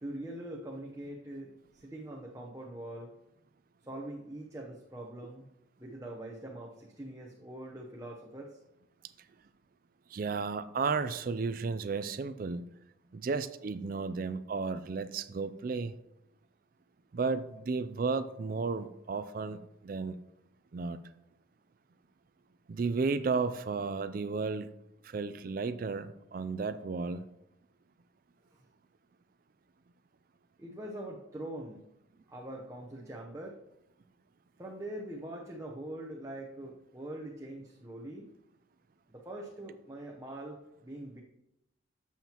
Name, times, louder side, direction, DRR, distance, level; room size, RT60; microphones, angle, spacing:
voice 1, 0.0-3.1 3.8-5.5 5.8-8.6 28.5-28.6 30.6-31.8 32.3-33.6 34.6-38.3 39.1-41.2, right 1 dB, 15° right, -1 dB, 0.8 m, -43 dB
voice 2, 10.1-12.6 13.1-16.0 17.1-20.2 20.7-21.0 22.7-24.7 25.0-27.2, right 4 dB, 45° right, 13 dB, 0.3 m, -33 dB
11.5 x 7.2 x 2.9 m, 0.84 s
head